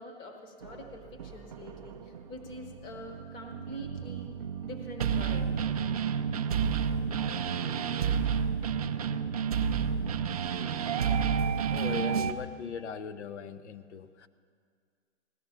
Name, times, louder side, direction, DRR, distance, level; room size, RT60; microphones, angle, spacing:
voice 1, 0.0-4.3 4.6-5.6, left 1 dB, 15° left, 3 dB, 0.9 m, -45 dB
sound 1, 0.6-12.3, right 7 dB, 35° right, 0.4 m, -31 dB
voice 2, 11.7-14.3, left 7 dB, 70° left, 11 dB, 0.8 m, -39 dB
17.0 x 11.5 x 5.6 m, 2.1 s
hypercardioid pair, 160°, 36 cm